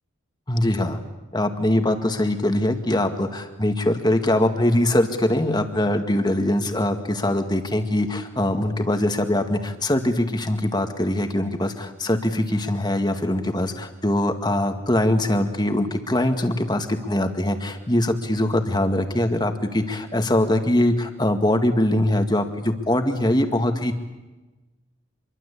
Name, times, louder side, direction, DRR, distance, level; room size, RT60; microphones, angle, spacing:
voice 1, 0.5-1.0 1.3-23.9, left 1 dB, 20° left, 6 dB, 2.0 m, -22 dB
27.0 x 23.0 x 8.5 m, 1.1 s
head